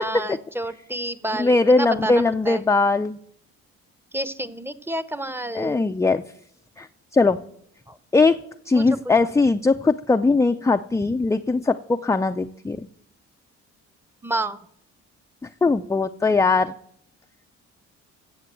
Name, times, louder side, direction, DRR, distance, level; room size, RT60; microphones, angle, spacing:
voice 1, 0.0-2.6 4.1-5.9 7.9-8.0 8.7-9.0 14.2-14.6, right 1 dB, 10° right, 15 dB, 0.8 m, -29 dB
voice 2, 1.4-3.2 5.5-6.2 6.8-6.9 7.1-7.4 8.1-8.4 8.7-12.9 15.6-16.7, left 3 dB, 10° left, 7 dB, 0.4 m, -20 dB
15.0 x 7.4 x 7.5 m, 0.69 s
cardioid pair, 90°, 30 cm